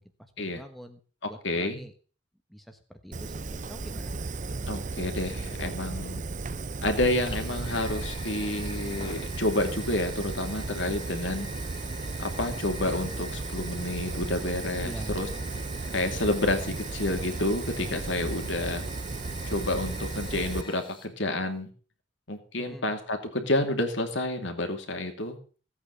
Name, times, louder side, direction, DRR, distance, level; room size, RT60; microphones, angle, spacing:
voice 1, 0.0-1.9 2.5-4.1 14.8-15.1 22.6-22.9, equal, ahead, 6 dB, 1.1 m, -45 dB
voice 2, 1.2-1.8 4.7-6.2 6.8-11.5 12.2-15.3 15.9-18.9 19.5-21.7 22.3-25.4, left 1 dB, 65° left, 5 dB, 2.6 m, -29 dB
Fire, 3.1-20.6, right 3 dB, 40° right, 0.6 m, -35 dB
Fire 2, 7.2-21.1, left 3 dB, 25° left, 2.1 m, -45 dB
16.0 x 8.6 x 6.7 m, 0.39 s
head